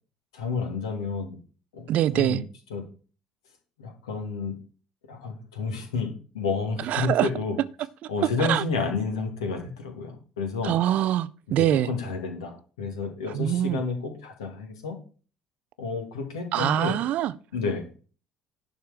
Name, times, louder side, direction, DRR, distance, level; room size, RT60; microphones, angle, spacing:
voice 1, 0.3-1.4 1.7-2.4 2.7-2.8 3.8-4.6 5.1-7.5 8.1-10.8 11.6-15.0 15.8-17.0 17.5-17.9, left 4 dB, 75° left, 2.3 m, -30 dB
voice 2, 1.9-2.4 6.8-7.3 8.5-8.6 10.6-11.9 13.3-13.8 16.5-17.3, right 12 dB, 55° right, 0.6 m, -24 dB
11.0 x 4.6 x 6.6 m
figure-of-eight pair, 55°, 3 cm